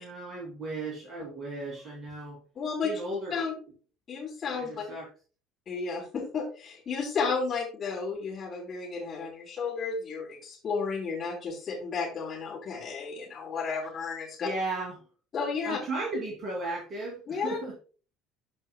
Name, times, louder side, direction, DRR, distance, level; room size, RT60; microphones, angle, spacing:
voice 1, 0.0-2.4 2.8-3.3 4.5-5.1 14.4-15.0 15.6-17.7, right 2 dB, 35° right, -2 dB, 2.8 m, -35 dB
voice 2, 2.6-2.9 3.3-3.6 4.1-4.7 5.7-14.5 15.3-15.8 17.3-17.6, left 5 dB, 40° left, -6 dB, 3.6 m, -32 dB
13.0 x 5.4 x 2.3 m, 0.38 s
figure-of-eight pair, 60°, 0 cm